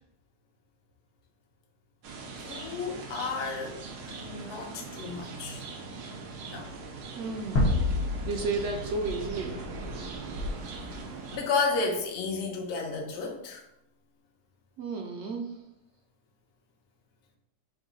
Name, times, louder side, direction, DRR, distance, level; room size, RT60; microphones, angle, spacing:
sound 1, 2.0-11.4, right 3 dB, 85° right, 1.3 m, -40 dB
voice 1, 2.3-3.8 4.1-5.6 6.5-6.7 11.3-13.6, left 4 dB, 55° left, 2 dB, 0.8 m, -32 dB
voice 2, 7.2-8.0 8.2-9.6 14.8-15.5, right 3 dB, 70° right, 2 dB, 0.7 m, -33 dB
sound 2, 7.6-10.5, left 2 dB, 85° left, 1.4 m, -29 dB
3.9 x 2.6 x 3.8 m, 0.83 s
omnidirectional pair, 1.7 m